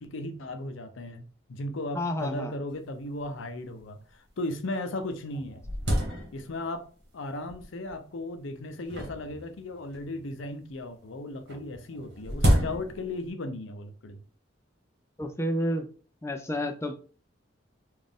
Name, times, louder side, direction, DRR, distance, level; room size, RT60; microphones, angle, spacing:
voice 1, 0.0-1.2 1.5-5.6 6.3-6.9 7.1-14.2, left 1 dB, 80° left, 0.6 m, -36 dB
voice 2, 1.9-2.5 15.2-15.9 16.2-16.9, equal, 15° left, 0.3 m, -30 dB
sound 1, 2.7-2.8 3.0-3.1 3.8-3.9 4.5-4.6 5.0-6.8 7.5-7.9 8.9-10.2 11.5-13.3, equal, 65° right, 1.4 m, -29 dB
3.9 x 2.5 x 3.5 m
head